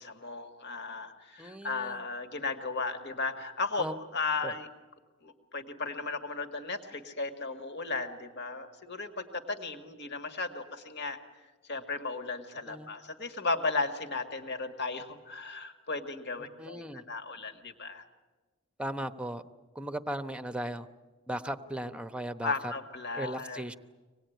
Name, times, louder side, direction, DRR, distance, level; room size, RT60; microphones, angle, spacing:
voice 1, 0.0-3.9 4.1-4.7 5.2-11.2 11.7-18.0 22.4-23.6, left 3 dB, 55° left, 5 dB, 1.9 m, -35 dB
voice 2, 1.4-2.0 3.8-3.9 4.4-4.5 12.7-12.9 16.4-17.0 18.8-19.4 19.7-20.9 21.3-22.7 23.2-23.7, right 1 dB, 5° right, 10 dB, 1.0 m, -37 dB
25.5 x 19.5 x 9.3 m, 1.3 s
head